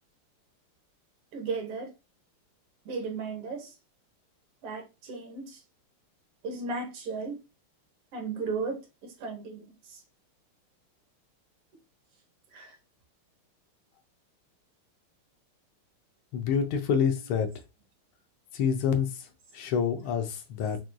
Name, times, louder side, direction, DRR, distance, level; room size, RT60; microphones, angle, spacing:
voice 1, 1.3-1.9 2.9-3.7 4.6-5.6 6.4-7.4 8.1-10.0 12.5-12.8, right 4 dB, 85° right, 2.0 m, -35 dB
voice 2, 16.3-17.5 18.5-19.3 19.5-20.8, left 7 dB, 75° left, 1.5 m, -27 dB
6.0 x 2.6 x 2.2 m
omnidirectional pair, 2.4 m